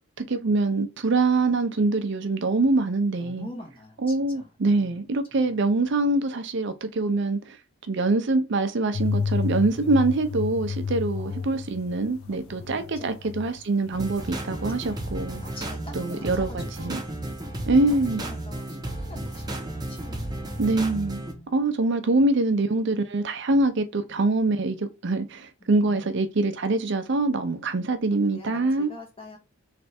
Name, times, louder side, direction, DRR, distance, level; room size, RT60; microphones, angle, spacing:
voice 1, 0.0-3.5 4.0-7.6 7.9-15.4 16.0-17.0 17.7-18.2 20.6-21.2 21.5-28.9, right 2 dB, 60° right, 0.5 m, -24 dB
voice 2, 3.2-4.9 5.3-5.5 11.2-11.6 12.3-13.5 14.6-15.0 15.4-17.0 17.8-20.5 21.2-21.5 25.8-26.1 28.1-29.4, left 1 dB, 25° left, 1.4 m, -45 dB
sound 1, 8.9-14.0 14.2-15.3, left 5 dB, 90° left, 0.5 m, -31 dB
sound 2, 13.9-21.3, right 1 dB, 20° right, 0.8 m, -33 dB
3.3 x 3.3 x 4.2 m
head